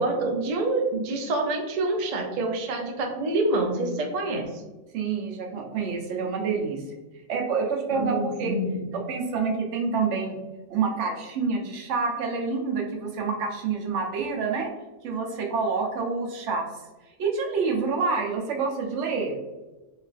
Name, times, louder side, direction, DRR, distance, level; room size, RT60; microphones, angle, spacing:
voice 1, 0.0-4.6 7.9-8.9, right 2 dB, 90° right, 1 dB, 0.3 m, -27 dB
voice 2, 4.9-6.8 7.3-8.6 8.9-10.4 10.7-14.7 15.0-16.7 17.2-19.3, right 5 dB, 70° right, 2 dB, 0.9 m, -27 dB
3.0 x 2.3 x 2.4 m, 1.1 s
omnidirectional pair, 1.3 m